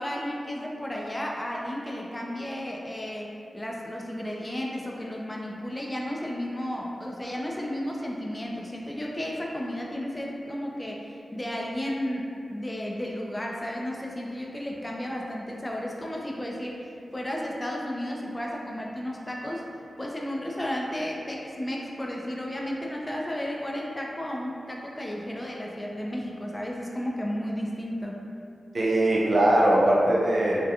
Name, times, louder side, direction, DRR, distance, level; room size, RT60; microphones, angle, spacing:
voice 1, 0.0-19.6 20.0-28.2, equal, 25° left, -2 dB, 0.4 m, -33 dB
voice 2, 28.7-30.6, right 1 dB, 60° right, -4 dB, 0.5 m, -21 dB
2.3 x 2.2 x 2.7 m, 2.5 s
cardioid pair, 45°, 0 cm